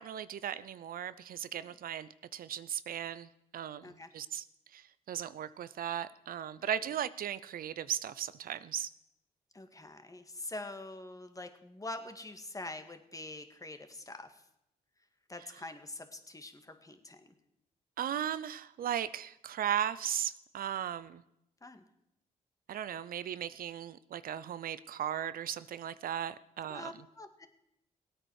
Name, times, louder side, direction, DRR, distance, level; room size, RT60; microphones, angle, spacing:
voice 1, 0.0-4.5 4.7-8.9 18.0-21.2 22.7-26.9, right 10 dB, 70° right, 15 dB, 0.6 m, -37 dB
voice 2, 9.5-14.4 15.3-17.2 21.6-21.8 26.7-27.5, left 2 dB, 20° left, 7 dB, 1.9 m, -45 dB
17.0 x 8.9 x 6.4 m, 0.82 s
supercardioid pair, 60°, 16 cm